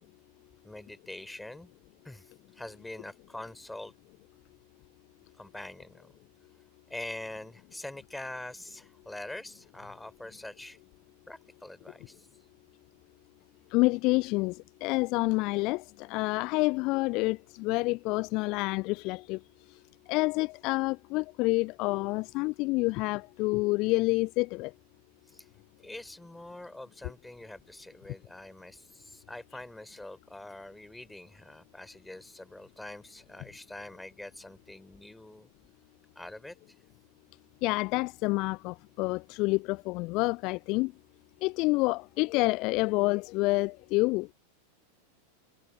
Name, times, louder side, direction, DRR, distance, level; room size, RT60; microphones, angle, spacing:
voice 1, 0.6-1.7 2.0-3.9 5.4-6.1 6.9-10.8 11.3-12.3 25.3-25.5 25.8-35.5 36.2-36.6, left 1 dB, 5° left, 3.8 m, -44 dB
voice 2, 13.7-19.4 20.1-24.7 37.6-40.9 41.4-44.3, left 24 dB, 40° left, 0.4 m, -28 dB
figure-of-eight pair, 90°, 0 cm